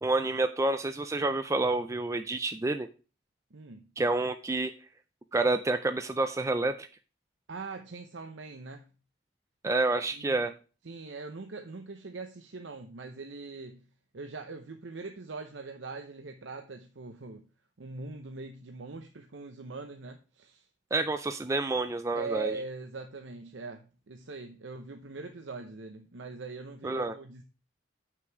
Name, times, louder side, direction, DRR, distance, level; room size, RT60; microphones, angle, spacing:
voice 1, 0.0-2.9 4.0-4.7 5.3-6.9 9.6-10.5 20.9-22.5 26.8-27.1, right 2 dB, 15° right, 9 dB, 0.4 m, -28 dB
voice 2, 3.5-3.9 7.5-8.9 10.1-10.5 10.8-13.8 14.1-17.5 17.8-20.7 22.1-27.4, right 4 dB, 75° right, 5 dB, 0.8 m, -42 dB
8.0 x 6.0 x 4.6 m, 0.35 s
head